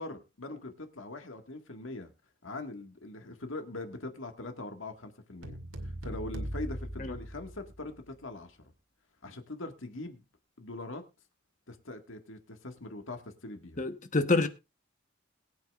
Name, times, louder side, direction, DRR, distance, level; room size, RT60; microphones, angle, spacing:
voice 1, 0.0-2.1 2.4-5.6 5.8-8.6 9.2-10.2 10.6-11.0 11.7-13.8, left 2 dB, 70° left, 1.8 m, -42 dB
sound 1, 5.4-8.0, equal, 80° right, 2.3 m, -39 dB
voice 2, 13.8-14.5, left 3 dB, 35° left, 1.1 m, -27 dB
21.5 x 8.9 x 2.4 m
head